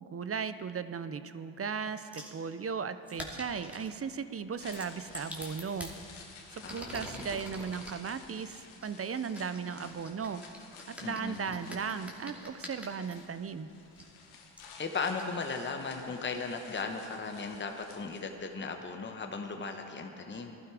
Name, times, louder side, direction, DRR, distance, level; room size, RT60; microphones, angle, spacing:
voice 1, 0.1-5.9 6.5-10.4 10.9-13.7, right 6 dB, 30° right, 12 dB, 0.6 m, -36 dB
sound 1, 2.1-2.4 3.1-3.9 4.6-6.0 6.5-8.0 8.8-13.2 14.0-14.1 14.6-14.7 15.2-15.3, equal, 5° right, 2.6 m, -46 dB
sound 2, 4.4-18.6 18.9-19.0, left 5 dB, 75° left, 1.8 m, -53 dB
voice 2, 6.6-7.2 11.0-11.5 14.8-20.6, left 4 dB, 20° left, 4 dB, 1.2 m, -37 dB
16.0 x 11.5 x 4.9 m, 2.7 s
supercardioid pair, 65°, 49 cm